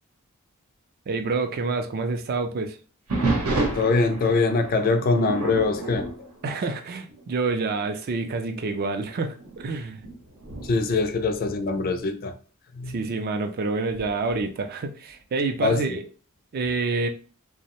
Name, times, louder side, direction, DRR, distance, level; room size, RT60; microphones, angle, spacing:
voice 1, 1.1-2.8 6.4-10.0 12.9-16.0 16.5-17.1, right 3 dB, 45° right, 0.4 m, -27 dB
sound 1, 3.1-7.2 7.6-7.9 8.5-8.6 9.4-12.1 13.9-14.4, right 2 dB, 85° right, 0.8 m, -31 dB
voice 2, 3.7-6.3 10.6-12.3 12.8-13.0 15.6-16.0, left 3 dB, 40° left, 0.3 m, -23 dB
2.6 x 2.0 x 2.9 m
head